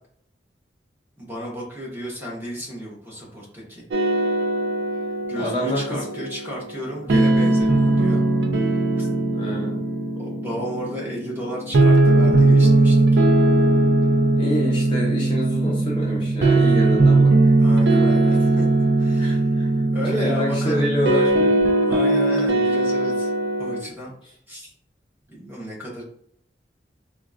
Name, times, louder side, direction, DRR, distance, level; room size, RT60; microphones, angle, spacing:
voice 1, 1.2-3.9 5.2-8.2 8.5-9.1 10.2-13.0 17.6-19.6 19.9-20.8 21.9-23.3 23.6-24.1 24.5-24.7 25.3-26.0, equal, 10° right, -5 dB, 0.9 m, -33 dB
sound 1, 3.9-23.8, right 2 dB, 80° right, 0.4 m, -19 dB
voice 2, 5.4-6.2 9.3-9.8 14.4-17.5 19.2-21.5, equal, 30° left, -3 dB, 0.5 m, -27 dB
3.6 x 2.2 x 2.4 m, 0.66 s
head